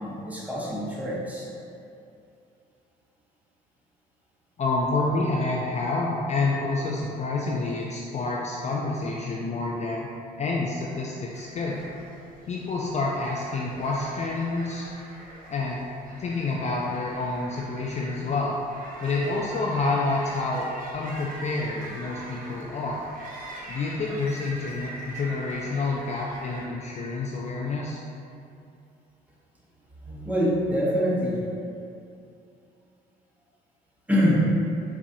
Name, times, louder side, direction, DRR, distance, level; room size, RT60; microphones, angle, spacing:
voice 1, 0.0-1.5 30.0-31.4 34.1-34.5, equal, 10° right, -7 dB, 1.0 m, -25 dB
voice 2, 4.6-10.1 10.4-11.8 12.5-14.9 15.5-15.9 16.1-18.5 19.0-20.6 20.9-23.1 23.7-28.0, left 3 dB, 35° left, -3 dB, 0.4 m, -28 dB
sound 1, 11.3-26.7, right 1 dB, 45° right, 0.7 m, -43 dB
4.0 x 2.4 x 2.6 m, 2.6 s
supercardioid pair, 65°, 19 cm